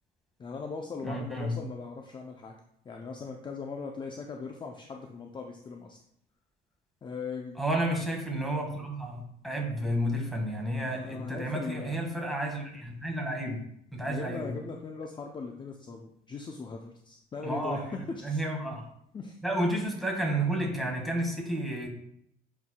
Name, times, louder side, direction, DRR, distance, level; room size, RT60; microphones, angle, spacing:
voice 1, 0.4-2.6 2.8-6.0 7.0-7.6 10.9-12.1 14.1-18.4 19.1-19.4, left 4 dB, 25° left, 2 dB, 0.5 m, -39 dB
voice 2, 1.0-1.5 7.6-13.6 13.9-14.5 17.4-17.9 18.2-18.8 19.4-21.9, right 1 dB, ahead, 0 dB, 1.7 m, -31 dB
9.0 x 4.7 x 2.3 m, 0.72 s
cardioid pair, 110°, 17 cm